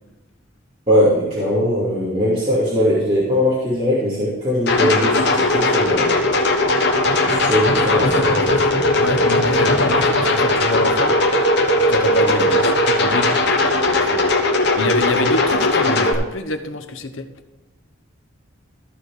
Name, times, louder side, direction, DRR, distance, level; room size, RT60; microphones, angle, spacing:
voice 1, 0.9-6.2 7.2-8.6 12.2-12.4, equal, 30° right, -9 dB, 2.6 m, -20 dB
sound 1, 4.7-16.1, left 2 dB, 55° left, 1.3 m, -18 dB
voice 2, 9.0-11.1 11.8-17.3, left 2 dB, 70° left, 8 dB, 1.0 m, -26 dB
14.0 x 4.8 x 4.9 m, 1.1 s
head